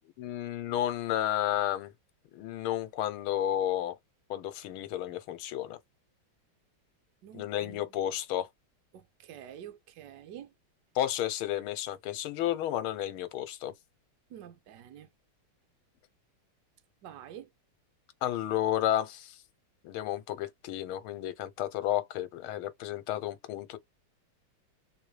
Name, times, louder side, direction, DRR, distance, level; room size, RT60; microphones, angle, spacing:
voice 1, 0.2-1.9 2.3-4.0 4.3-5.8 7.3-8.5 10.9-13.7 18.2-19.4 19.8-23.8, left 12 dB, 85° left, 1.6 m, -32 dB
voice 2, 7.2-7.8 8.9-10.5 14.3-15.1 17.0-17.5, right 10 dB, 65° right, 1.3 m, -47 dB
3.7 x 3.0 x 3.2 m
omnidirectional pair, 2.3 m